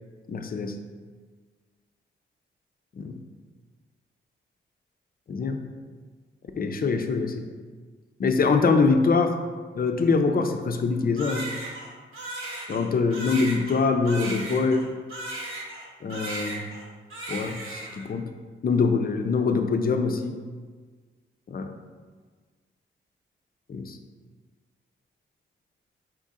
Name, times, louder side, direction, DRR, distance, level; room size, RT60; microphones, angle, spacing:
voice 1, 0.3-0.8 3.0-3.1 5.3-5.6 6.5-7.5 8.2-9.4 9.8-11.5 12.7-14.9 16.0-16.7 17.3-18.3 18.6-20.4 21.5-21.7 23.7-24.0, left 4 dB, 45° left, 6 dB, 0.5 m, -24 dB
Crying sobbing, 11.2-15.9 16.1-16.8 17.1-18.1, right 2 dB, 85° right, 0.9 m, -36 dB
4.3 x 2.5 x 4.1 m, 1.5 s
cardioid pair, 55°, 21 cm